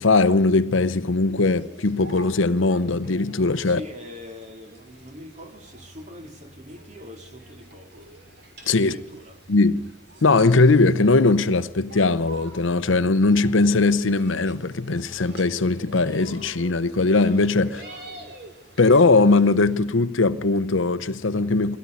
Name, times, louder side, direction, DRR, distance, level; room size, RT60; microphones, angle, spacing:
voice 1, 0.0-3.8 8.7-9.0 9.5-9.9 10.2-17.8 18.8-21.8, left 3 dB, 80° left, 0.8 m, -20 dB
sound 1, 1.4-19.8, right 2 dB, 55° right, 3.8 m, -47 dB
voice 2, 3.6-8.1 8.7-9.4 17.6-18.3, left 1 dB, 35° right, 2.6 m, -43 dB
22.5 x 17.0 x 9.6 m
head